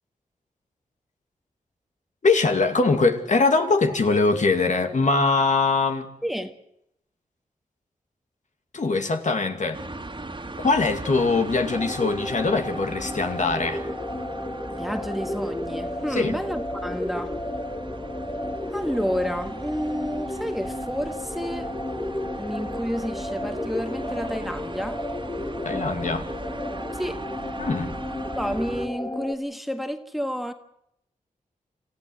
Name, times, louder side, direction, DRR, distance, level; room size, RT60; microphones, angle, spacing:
voice 1, 2.2-6.1 8.7-9.8 10.6-13.8 16.1-16.4 25.6-26.3 27.6-27.9, left 3 dB, 55° left, 2.3 m, -22 dB
voice 2, 6.2-6.5 14.7-17.4 18.7-21.7 22.4-25.0 26.9-27.2 28.4-30.5, equal, ahead, 1.8 m, -30 dB
sound 1, 9.7-28.9, right 2 dB, 35° right, 2.5 m, -38 dB
sound 2, 11.7-29.3, left 1 dB, 20° left, 1.7 m, -33 dB
26.5 x 15.0 x 7.9 m
cardioid pair, 50°, 15 cm